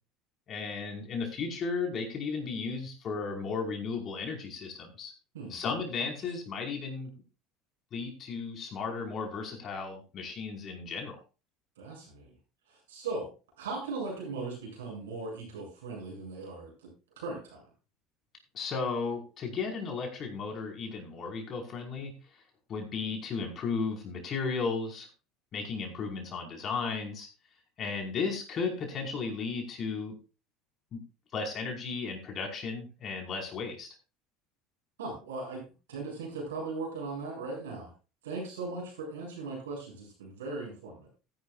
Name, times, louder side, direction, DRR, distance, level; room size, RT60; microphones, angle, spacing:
voice 1, 0.5-5.1 5.5-7.1 7.9-11.2 18.5-22.2 22.7-25.1 25.5-27.3 27.8-30.2 30.9-31.0 31.3-33.9, left 4 dB, 45° left, 1 dB, 5.1 m, -34 dB
voice 2, 11.8-12.3 12.7-13.3 13.6-16.9 17.2-17.6 35.0-37.9 38.2-41.1, right 3 dB, 90° right, -2 dB, 7.9 m, -38 dB
15.0 x 11.5 x 2.5 m, 0.32 s
hypercardioid pair, 85°, 0 cm